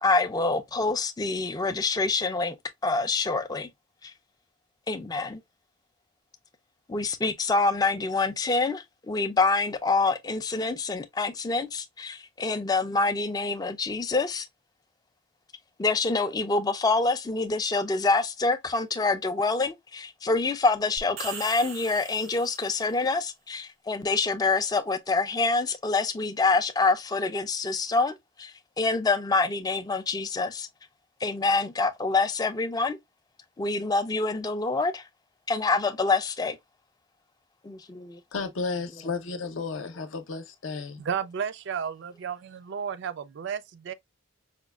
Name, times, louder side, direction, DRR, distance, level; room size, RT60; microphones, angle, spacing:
voice 1, 0.0-2.6 2.8-3.7 4.0-4.1 4.9-5.4 6.9-14.5 15.8-30.7 31.2-33.0 33.6-35.0 35.5-36.6 37.6-38.2, left 3 dB, 20° left, 0.3 m, -26 dB
sound 1, 21.0-22.9, right 6 dB, 85° right, 0.8 m, -40 dB
voice 2, 38.3-41.0, left 4 dB, 70° left, 0.7 m, -33 dB
voice 3, 41.0-43.9, right 7 dB, 60° right, 0.3 m, -33 dB
5.0 x 2.2 x 2.3 m
head